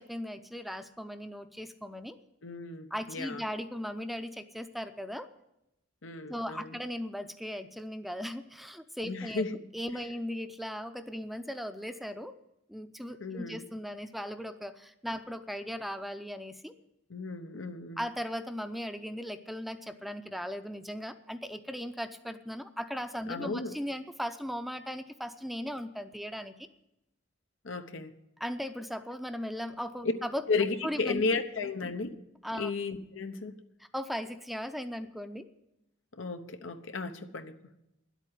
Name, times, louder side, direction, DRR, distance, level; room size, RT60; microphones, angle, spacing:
voice 1, 0.0-2.2 2.9-5.3 6.3-9.4 9.7-12.3 12.7-16.7 18.0-26.7 28.4-30.4 30.8-31.2 32.4-32.7 33.8-35.5, equal, ahead, 0.5 m, -38 dB
voice 2, 2.4-3.4 6.0-6.8 9.0-9.6 9.9-10.0 13.2-13.6 17.1-18.0 23.3-23.7 27.6-28.1 30.0-30.1 30.5-32.1 32.6-33.6 36.1-37.6, left 4 dB, 90° left, 0.9 m, -34 dB
11.0 x 8.3 x 9.8 m
head